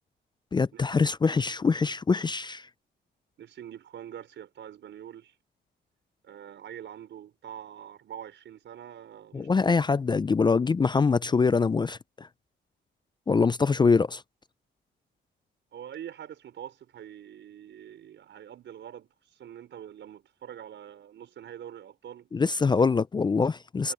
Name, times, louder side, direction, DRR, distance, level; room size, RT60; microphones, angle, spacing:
voice 1, 0.5-2.7 9.3-12.3 13.3-14.2 22.3-23.9, left 4 dB, 20° left, 0.4 m, -24 dB
voice 2, 3.4-5.3 6.2-9.8 15.7-19.1 19.4-22.3 23.8-23.9, right 10 dB, 65° right, 5.7 m, -44 dB
cardioid pair, 90°, 20 cm